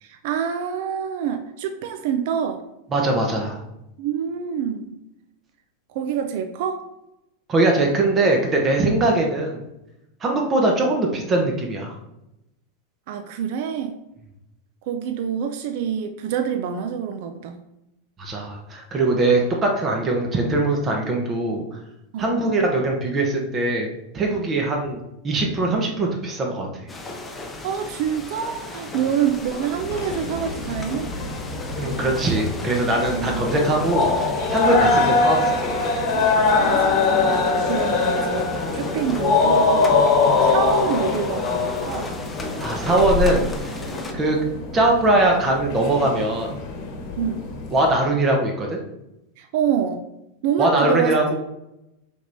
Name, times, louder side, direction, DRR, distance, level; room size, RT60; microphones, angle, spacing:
voice 1, 0.0-2.6 4.0-5.0 5.9-6.9 13.1-14.0 14.9-17.6 22.1-22.3 27.6-31.1 33.1-33.4 34.8-34.9 36.3-40.0 40.4-42.1 47.2-47.5 49.4-50.0 50.4-51.3, right 8 dB, 60° right, 7 dB, 0.4 m, -27 dB
voice 2, 2.9-3.6 7.5-9.6 10.2-11.9 18.2-21.8 22.2-23.9 24.1-25.0 25.2-26.7 31.8-35.6 42.6-43.5 44.1-44.4 44.7-46.5 47.7-48.8 50.6-51.3, right 2 dB, 30° right, 1 dB, 0.9 m, -21 dB
sound 1, 26.9-44.1, left 2 dB, 15° left, 0.6 m, -35 dB
sound 2, 29.7-47.9, left 4 dB, 50° left, 1.1 m, -23 dB
5.0 x 3.4 x 2.6 m, 0.89 s
hypercardioid pair, 100°, 0 cm